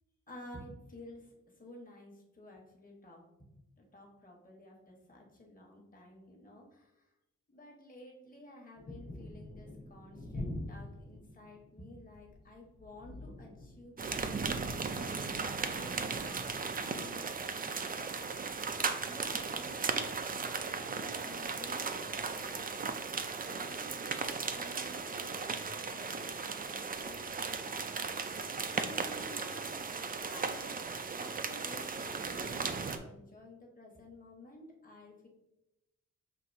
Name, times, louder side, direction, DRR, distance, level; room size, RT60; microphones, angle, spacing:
voice 1, 0.3-3.5 3.8-7.1 7.5-14.4 15.0-18.5 19.0-22.9 23.5-27.9 28.7-29.8 30.3-30.8 31.2-35.3, left 1 dB, 25° left, -1 dB, 1.2 m, -53 dB
sound 1, 8.7-17.1 18.4-18.8 21.4-21.5 21.9-22.0, left 1 dB, 75° left, 1.2 m, -47 dB
sound 2, 14.0-33.0, right 4 dB, 30° right, 0.4 m, -36 dB
5.9 x 2.7 x 2.6 m, 0.92 s
cardioid pair, 80°, 31 cm